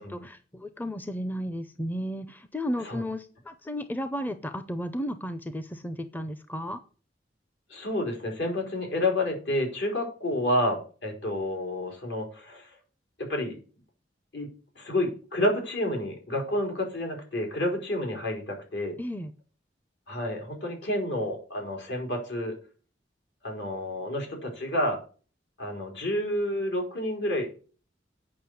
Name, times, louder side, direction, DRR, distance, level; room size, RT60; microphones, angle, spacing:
voice 1, 0.0-6.8 19.0-19.3, equal, 10° left, 10 dB, 0.6 m, -34 dB
voice 2, 7.7-12.8 13.2-13.6 14.3-14.5 14.8-19.0 20.1-22.5 23.4-25.0 25.6-27.5, left 1 dB, 70° left, 2 dB, 4.1 m, -29 dB
8.6 x 5.6 x 7.9 m, 0.38 s
head